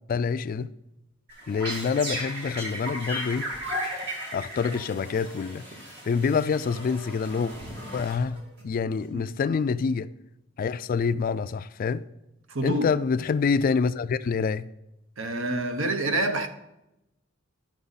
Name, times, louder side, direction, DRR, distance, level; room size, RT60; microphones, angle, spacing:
voice 1, 0.1-0.7 1.5-3.5 4.3-5.6 6.0-7.5 7.9-10.1 10.6-12.0 12.6-14.7, left 5 dB, 45° left, 0.3 m, -26 dB
sound 1, 1.3-8.6, equal, 60° right, 2.3 m, -36 dB
voice 2, 12.5-13.0 15.2-16.5, right 1 dB, 75° right, 0.9 m, -27 dB
11.0 x 6.2 x 4.0 m
head